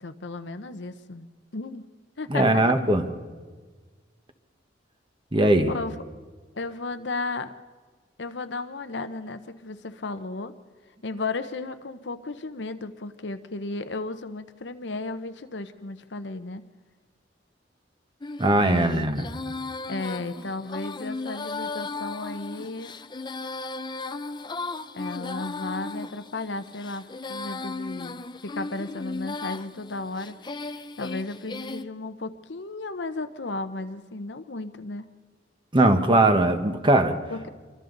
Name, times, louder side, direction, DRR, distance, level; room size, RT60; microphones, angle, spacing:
voice 1, 0.0-1.3 1.5-1.9 2.2-2.6 5.7-6.0 6.5-7.5 8.2-10.5 11.0-16.6 18.6-19.1 19.9-23.0 24.9-30.4 31.0-35.1 37.3-37.5, left 3 dB, 70° left, 10 dB, 0.9 m, -34 dB
voice 2, 2.3-3.0 5.3-5.7 18.4-19.2 35.7-37.2, right 1 dB, 30° right, 7 dB, 1.3 m, -20 dB
Female singing, 18.2-31.8, left 3 dB, 25° left, 0.6 m, -36 dB
27.5 x 24.0 x 4.0 m, 1.5 s
head